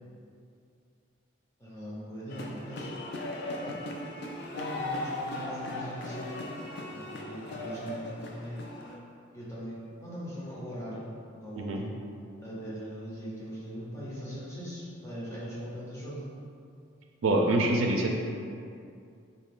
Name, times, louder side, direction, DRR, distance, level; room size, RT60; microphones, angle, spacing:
voice 1, 1.6-2.9 3.6-3.8 4.5-6.5 6.9-8.6 9.3-11.0 11.4-11.7 12.4-16.3, equal, 15° left, -8 dB, 0.8 m, -40 dB
sound 1, 2.3-9.0, left 1 dB, 55° left, 0.4 m, -38 dB
voice 2, 17.2-18.1, right 2 dB, 80° right, 1 dB, 0.4 m, -25 dB
3.9 x 2.5 x 3.6 m, 2.5 s
head